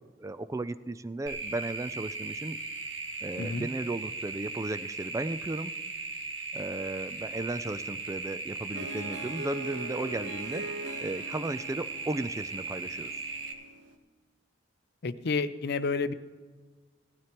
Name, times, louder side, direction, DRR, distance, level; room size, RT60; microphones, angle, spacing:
voice 1, 0.2-2.6 3.2-5.7 6.5-13.1, right 2 dB, 15° right, 13 dB, 0.3 m, -35 dB
sound 1, 1.3-13.5, right 3 dB, 90° right, 1.4 m, -38 dB
voice 2, 3.4-3.7 15.0-16.1, left 4 dB, 60° left, 12 dB, 0.6 m, -30 dB
Harp, 8.7-13.9, right 1 dB, 75° right, 1.1 m, -42 dB
17.0 x 12.5 x 3.0 m, 1.4 s
head